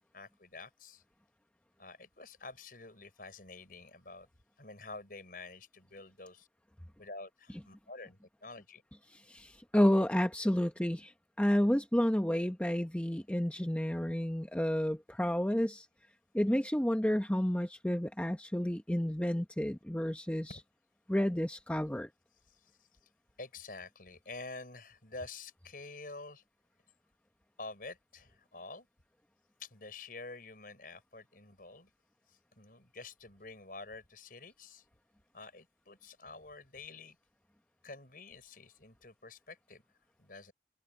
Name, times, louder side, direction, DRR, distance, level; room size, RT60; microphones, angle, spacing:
voice 1, 0.1-1.0 1.8-4.3 4.6-6.5 7.0-8.8 20.5-20.6 22.5-22.9 23.4-26.4 27.6-28.9 29.6-31.9 32.3-34.8 35.3-37.2 37.8-39.8 40.2-40.5, left 3 dB, 50° left, 5.9 m, -48 dB
voice 2, 9.3-11.1 11.4-15.8 16.3-20.5 21.1-22.1, equal, 5° left, 0.8 m, -30 dB
head